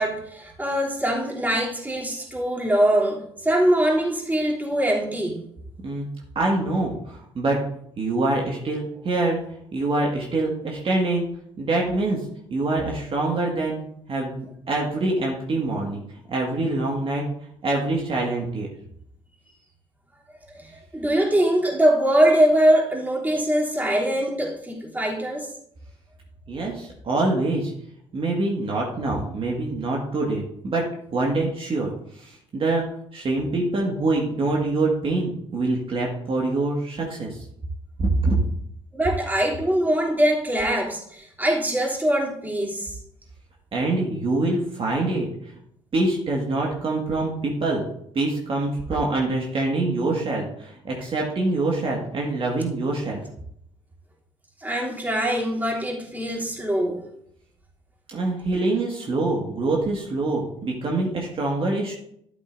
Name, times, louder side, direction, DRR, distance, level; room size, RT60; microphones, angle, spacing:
voice 1, 0.0-5.4 20.6-25.5 38.9-43.0 54.6-57.0, right 1 dB, 10° right, -2 dB, 3.2 m, -22 dB
voice 2, 6.4-7.6 8.0-9.4 9.7-11.3 11.6-12.2 12.5-13.8 14.1-16.0 16.3-17.2 17.6-18.7 26.5-27.7 28.1-30.8 31.1-32.8 33.1-37.5 38.0-38.4 43.7-45.5 45.9-47.8 48.1-53.2 58.1-61.9, right 2 dB, 40° right, -2 dB, 2.0 m, -25 dB
12.0 x 8.0 x 2.7 m, 0.72 s
hypercardioid pair, 50°, 14 cm